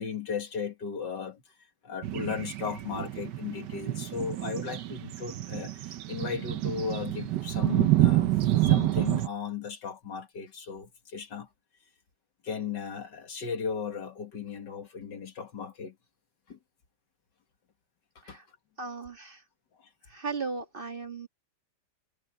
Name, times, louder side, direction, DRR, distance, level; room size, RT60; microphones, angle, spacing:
voice 1, 0.0-1.4 1.8-8.3 8.6-11.5 12.4-15.9 16.5-16.6 18.3-18.4, left 6 dB, 85° left, 2.6 m, -36 dB
sound 1, 2.0-9.3, right 15 dB, 80° right, 1.4 m, -28 dB
voice 2, 18.8-19.4 20.1-21.3, right 4 dB, 30° right, 1.8 m, -36 dB
omnidirectional pair, 1.8 m